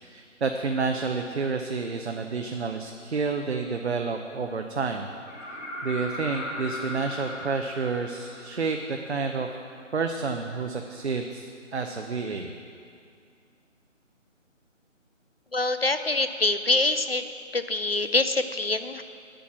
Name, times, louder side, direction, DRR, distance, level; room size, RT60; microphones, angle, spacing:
voice 1, 0.0-5.1 5.8-9.5 9.9-12.5, right 4 dB, 55° right, 4 dB, 0.7 m, -29 dB
sound 1, 5.3-9.1 11.0-11.1, left 1 dB, 80° left, 3.1 m, -37 dB
voice 2, 15.5-17.2 17.5-19.0, left 2 dB, 50° left, 10 dB, 0.4 m, -25 dB
9.1 x 8.6 x 6.0 m, 2.3 s
figure-of-eight pair, 170°, 39 cm